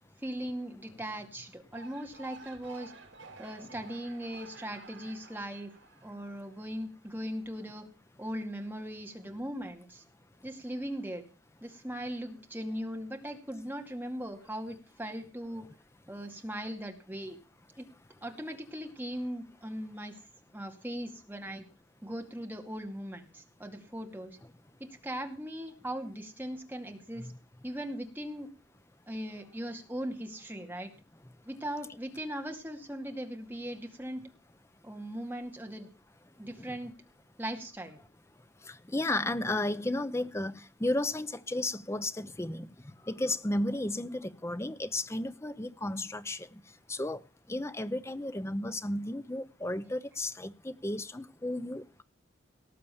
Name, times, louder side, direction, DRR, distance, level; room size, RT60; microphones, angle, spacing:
voice 1, 0.2-2.9 3.4-5.7 6.0-7.9 8.2-10.0 10.4-11.2 11.6-15.6 16.1-17.4 17.8-17.9 18.2-20.2 20.5-21.6 22.0-24.4 24.8-27.3 27.6-28.5 29.1-30.9 31.5-34.2 34.8-35.9 36.4-36.9 37.4-38.0, equal, 10° right, 2.2 m, -39 dB
sound 1, 1.6-6.9, right 3 dB, 75° right, 4.3 m, -52 dB
voice 2, 38.7-42.7 43.1-46.6 46.9-47.2 47.5-52.0, left 1 dB, 15° left, 0.6 m, -33 dB
18.5 x 6.7 x 7.1 m
head